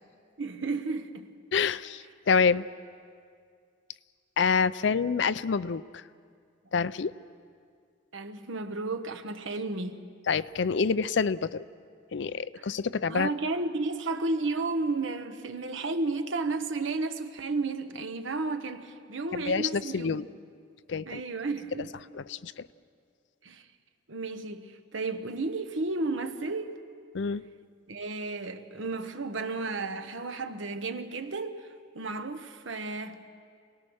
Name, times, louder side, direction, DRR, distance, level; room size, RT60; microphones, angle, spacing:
voice 1, 0.4-1.3 8.1-10.0 12.5-12.7 13.1-20.3 21.1-21.9 23.4-23.7 24.1-26.8 27.9-31.7 31.9-33.2, right 3 dB, 80° right, 1.2 m, -33 dB
voice 2, 1.5-2.7 4.4-6.0 6.7-7.1 10.3-11.7 12.1-13.3 19.3-20.2 20.9-21.2 22.1-22.7 27.1-27.4, left 5 dB, 65° left, 0.5 m, -27 dB
27.5 x 19.0 x 6.3 m
head